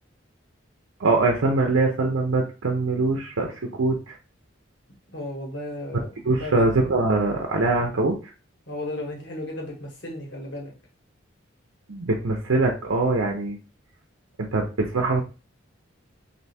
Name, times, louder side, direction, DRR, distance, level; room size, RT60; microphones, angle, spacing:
voice 1, 1.0-4.2 6.2-8.2 11.9-13.6 14.4-15.2, right 3 dB, 85° right, 1 dB, 0.7 m, -23 dB
voice 2, 5.1-6.9 8.7-10.7, left 1 dB, 60° left, 0 dB, 1.5 m, -34 dB
3.4 x 2.7 x 4.2 m, 0.33 s
head